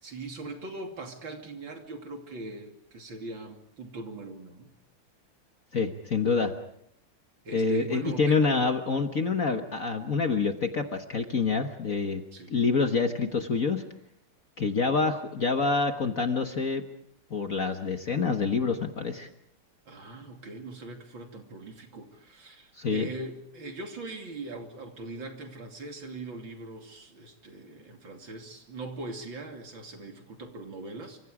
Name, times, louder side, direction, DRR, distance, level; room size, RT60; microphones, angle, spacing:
voice 1, 0.0-4.7 7.4-8.7 12.3-12.5 19.9-31.2, right 2 dB, 60° right, 3 dB, 3.5 m, -41 dB
voice 2, 5.7-6.5 7.5-12.2 12.5-13.8 14.6-16.8 17.3-19.3 22.8-23.1, left 4 dB, 45° left, 5 dB, 1.5 m, -27 dB
28.5 x 25.5 x 5.0 m, 0.71 s
omnidirectional pair, 2.4 m